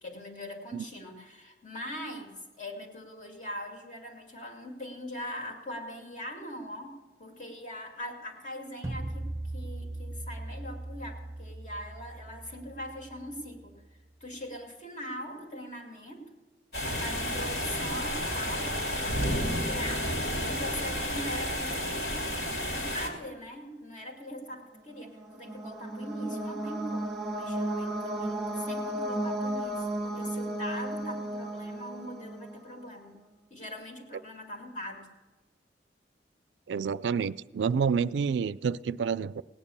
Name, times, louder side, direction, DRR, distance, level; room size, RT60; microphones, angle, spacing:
voice 1, 0.0-9.3 9.5-13.7 14.2-16.3 16.8-22.2 22.7-33.2 33.5-35.1, equal, 45° left, 2 dB, 2.2 m, -41 dB
sound 1, 8.8-13.9, right 1 dB, 15° right, 0.6 m, -39 dB
sound 2, 16.7-23.1, equal, 60° left, 2.9 m, -31 dB
sound 3, 25.0-32.8, right 1 dB, ahead, 1.3 m, -34 dB
voice 2, 36.7-39.4, right 6 dB, 90° right, 18 dB, 0.4 m, -28 dB
17.5 x 9.5 x 6.9 m, 1.2 s
head